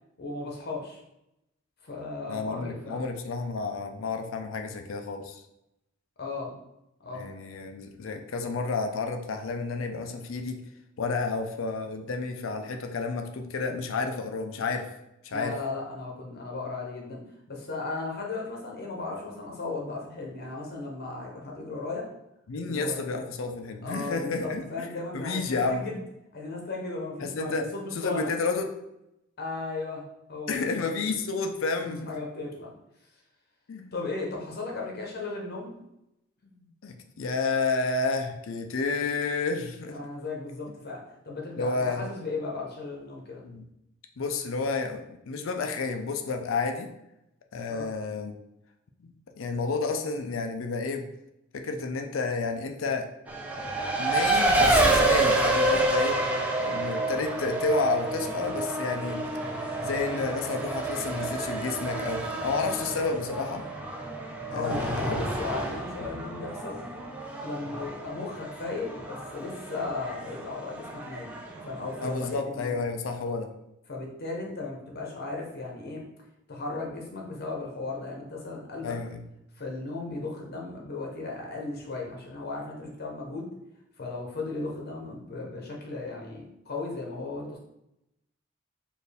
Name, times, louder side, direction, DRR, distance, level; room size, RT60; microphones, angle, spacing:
voice 1, 0.2-1.0 1.8-3.0 6.2-6.6 7.0-7.3 15.3-22.1 22.6-23.0 23.8-26.0 26.3-28.3 29.4-31.1 31.9-32.7 33.9-35.8 36.4-36.7 39.9-43.4 47.7-47.9 64.5-66.8 67.4-71.4 71.6-72.8 73.9-76.0 76.5-79.0 79.5-83.5 84.0-87.6, left 3 dB, 50° left, -1 dB, 0.8 m, -36 dB
voice 2, 2.3-5.4 7.1-10.6 11.0-14.9 15.2-15.5 22.5-24.9 25.1-25.9 27.2-27.7 28.0-28.7 30.5-32.2 33.7-33.9 36.8-40.0 41.6-42.1 43.4-43.6 44.2-46.9 47.5-48.4 49.0-51.1 51.5-53.1 54.0-56.2 56.6-59.2 59.8-63.6 64.5-65.2 72.0-73.5 78.8-79.2, left 4 dB, 70° left, 5 dB, 0.5 m, -30 dB
Race car auto racing, 53.3-72.4, right 2 dB, 5° right, 0.5 m, -29 dB
4.4 x 2.6 x 3.3 m, 0.85 s
head